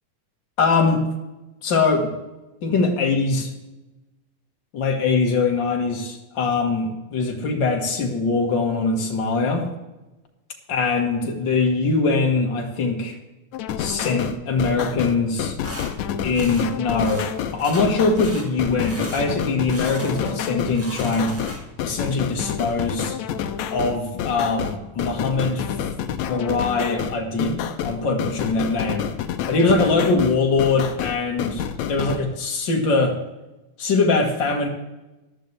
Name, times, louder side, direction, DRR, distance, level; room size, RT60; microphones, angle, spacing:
voice 1, 0.6-1.0 1.6-2.1 2.6-3.5 4.7-9.7 10.7-13.2 13.8-15.6 16.2-17.3 17.5-21.4 21.8-23.2 23.7-25.8 26.3-29.1 29.5-33.2 33.8-34.7, left 3 dB, 45° left, 2 dB, 2.0 m, -22 dB
sound 1, 13.5-32.2, left 9 dB, 75° left, 2.0 m, -28 dB
sound 2, 15.6-15.9 16.3-16.7 17.0-17.3 17.6-17.9 18.1-18.5 18.8-19.2 19.7-20.4 20.7-21.8, equal, 5° right, 1.3 m, -37 dB
14.0 x 12.0 x 3.4 m, 1.0 s
omnidirectional pair, 3.5 m